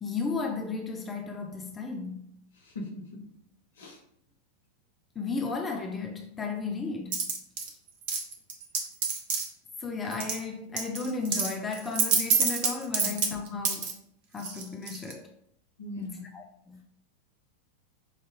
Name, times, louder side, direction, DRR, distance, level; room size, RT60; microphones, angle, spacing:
voice 1, 0.0-2.3 5.2-7.3 9.8-14.0 14.3-15.3 16.0-16.1 16.3-16.8, left 4 dB, 20° left, 0.4 m, -34 dB
voice 2, 2.6-3.3 3.8-4.0 13.0-13.2 15.8-16.3, left 2 dB, 65° left, 0.9 m, -40 dB
sound 1, 7.1-7.7 8.1-9.5 10.1-10.4 10.8-13.9 14.4-15.1, right 5 dB, 45° right, 0.8 m, -27 dB
5.6 x 2.5 x 2.6 m
figure-of-eight pair, 90°, 0 cm